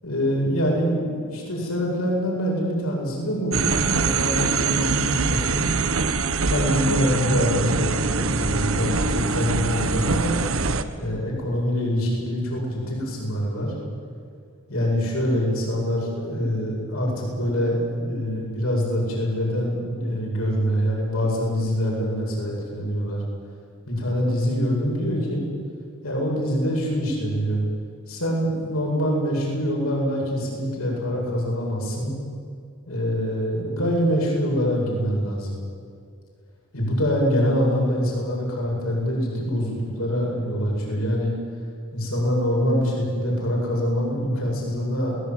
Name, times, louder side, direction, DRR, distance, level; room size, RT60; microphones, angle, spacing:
voice 1, 0.0-5.7 6.5-10.3 11.0-13.7 14.7-23.2 23.9-25.4 26.0-27.6 28.1-32.1 32.9-35.5 36.7-41.3 41.9-45.2, equal, 70° left, -2 dB, 8.0 m, -25 dB
sound 1, 3.5-10.8, right 4 dB, 65° right, 1.2 m, -23 dB
21.5 x 19.5 x 9.6 m, 2.3 s
head